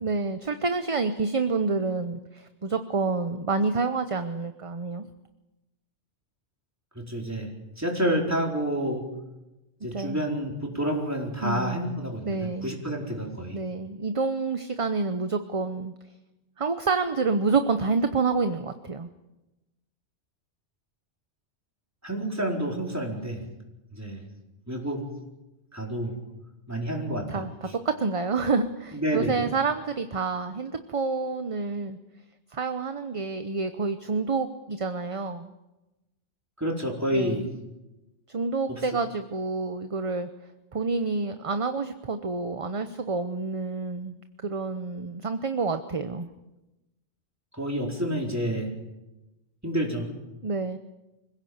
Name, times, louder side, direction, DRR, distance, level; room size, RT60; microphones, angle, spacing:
voice 1, 0.0-5.1 9.9-10.3 11.4-11.8 12.2-12.7 13.5-15.9 16.6-19.1 27.3-32.0 32.5-35.5 37.1-37.5 38.3-40.3 40.7-46.3 50.4-50.8, right 4 dB, 30° right, 9 dB, 0.9 m, -28 dB
voice 2, 6.9-7.5 7.8-9.1 9.8-13.6 22.0-23.4 24.0-24.2 24.7-25.0 25.7-26.1 26.7-27.4 28.9-29.4 36.6-37.5 38.7-38.8 47.6-48.7 49.6-50.1, equal, 15° right, -1 dB, 4.4 m, -29 dB
25.5 x 17.0 x 8.0 m, 1.0 s
omnidirectional pair, 1.2 m